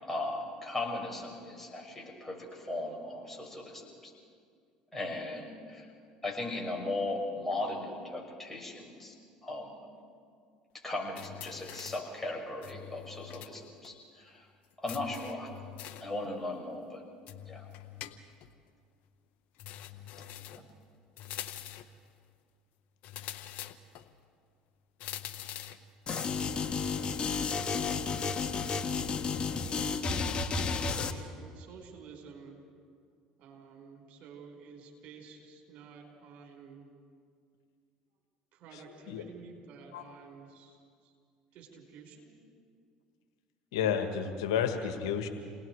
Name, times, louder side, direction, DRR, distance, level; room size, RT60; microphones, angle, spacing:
voice 1, 0.0-4.1 4.9-5.8 6.2-9.1 9.4-9.8 10.8-14.4 14.8-15.5 16.0-17.0 17.5-17.7, left 2 dB, 10° left, -1 dB, 6.8 m, -37 dB
sound 1, 11.2-12.1 12.6-13.6 13.8-13.9 14.9-16.1 17.3-18.5 19.6-20.7 21.2-22.0 23.0-24.1 25.0-25.9, left 12 dB, 65° left, 1.1 m, -44 dB
sound 2, 26.1-31.1, left 5 dB, 40° left, 1.5 m, -32 dB
voice 2, 29.5-32.6 33.4-36.9 38.5-41.1 41.5-42.3, right 5 dB, 60° right, 1 dB, 5.2 m, -51 dB
voice 3, 43.7-45.3, left 8 dB, 80° left, 6 dB, 1.7 m, -31 dB
28.5 x 19.5 x 4.8 m, 2.2 s
hypercardioid pair, 75°, 3 cm